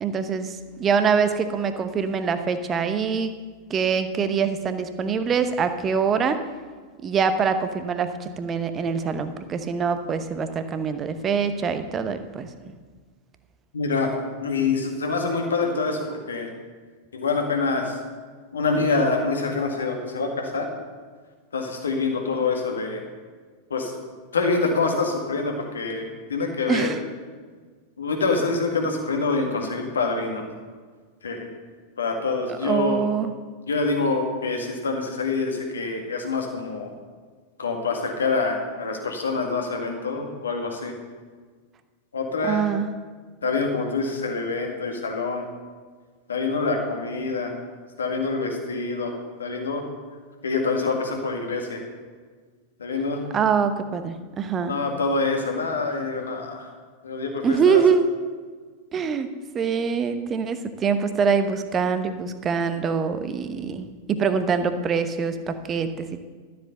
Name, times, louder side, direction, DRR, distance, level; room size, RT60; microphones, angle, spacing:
voice 1, 0.0-3.4 3.7-6.4 7.0-12.7 26.7-27.0 32.5-33.3 42.4-42.9 53.3-54.8 57.4-58.1 58.9-59.3 59.5-66.3, right 6 dB, 25° right, 9 dB, 0.9 m, -24 dB
voice 2, 13.7-14.1 14.4-16.5 17.1-18.0 18.5-20.7 21.5-23.0 23.7-23.9 24.3-26.9 28.0-30.4 31.2-31.5 32.0-33.1 33.7-36.9 37.6-40.9 42.1-42.6 43.4-45.4 46.3-47.5 48.0-49.1 49.4-49.8 50.4-51.8 52.8-53.2 54.7-56.7 57.0-57.8, left 4 dB, 70° left, 3 dB, 1.9 m, -26 dB
12.5 x 7.8 x 6.7 m, 1.5 s
figure-of-eight pair, 90°, 0 cm